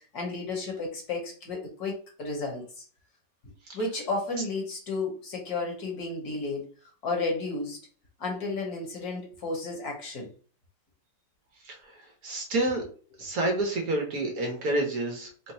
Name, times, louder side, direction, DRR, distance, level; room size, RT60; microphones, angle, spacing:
voice 1, 0.1-2.8 3.7-6.6 7.0-7.8 8.2-10.3, left 3 dB, 65° left, 0 dB, 1.8 m, -32 dB
voice 2, 12.2-12.8 13.2-15.5, right 2 dB, 60° right, 2 dB, 1.4 m, -29 dB
4.0 x 2.2 x 4.1 m, 0.40 s
omnidirectional pair, 1.8 m